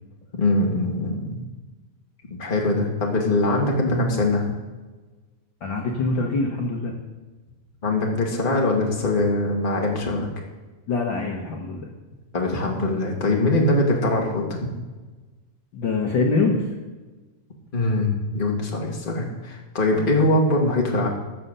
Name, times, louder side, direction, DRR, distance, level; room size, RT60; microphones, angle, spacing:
voice 1, 0.3-1.4 2.4-4.5 7.8-10.3 12.3-14.7 17.7-21.1, left 2 dB, 25° left, -1 dB, 1.2 m, -22 dB
voice 2, 5.6-6.9 10.9-11.9 15.7-16.6 19.9-20.1, left 3 dB, 85° left, 0 dB, 1.0 m, -24 dB
15.0 x 5.7 x 6.8 m, 1.2 s
omnidirectional pair, 4.0 m